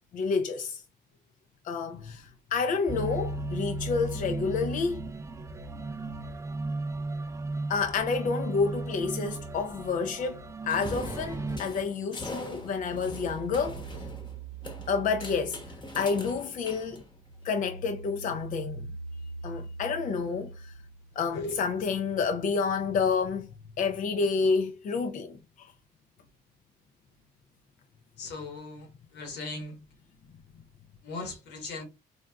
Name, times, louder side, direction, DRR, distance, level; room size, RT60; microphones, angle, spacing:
voice 1, 0.1-0.8 1.6-5.0 7.7-10.4 10.6-13.8 14.9-15.6 16.0-17.0 17.4-18.9 19.4-20.7 21.2-23.5 23.8-25.7, left 5 dB, 50° left, 0.4 m, -29 dB
sound 1, 2.9-11.6, right 2 dB, 15° right, 0.3 m, -35 dB
sound 2, 10.7-17.4, left 2 dB, 25° left, 0.9 m, -43 dB
sound 3, 12.6-16.4 16.8-21.4, right 4 dB, 85° right, 0.4 m, -43 dB
voice 2, 28.2-29.8 31.0-31.8, left 2 dB, 80° left, 1.2 m, -38 dB
3.9 x 2.3 x 2.2 m
cardioid pair, 90°, 17 cm